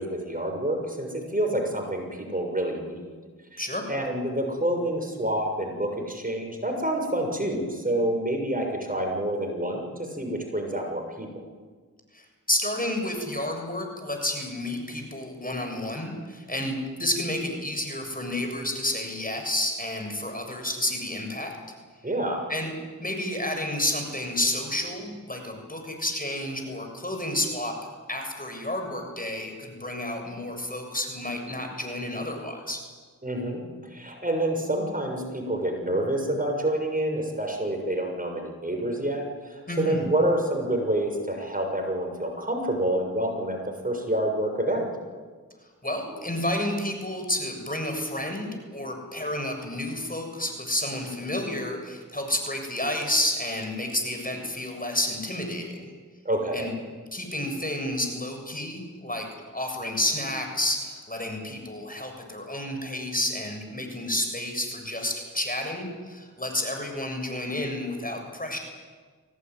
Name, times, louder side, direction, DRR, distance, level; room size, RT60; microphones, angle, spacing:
voice 1, 0.0-3.0 3.5-3.6 3.9-11.3 22.0-22.5 33.2-33.6 33.9-43.6 43.8-44.9 56.3-56.7, right 1 dB, 25° right, 2 dB, 6.7 m, -28 dB
voice 2, 12.1-21.5 22.5-22.7 23.0-27.7 28.1-32.8 39.7-40.0 45.8-55.9 56.5-56.7 57.1-59.3 59.5-68.6, left 1 dB, 25° left, 4 dB, 7.2 m, -30 dB
24.0 x 18.0 x 9.6 m, 1.5 s
cardioid pair, 40°, 35 cm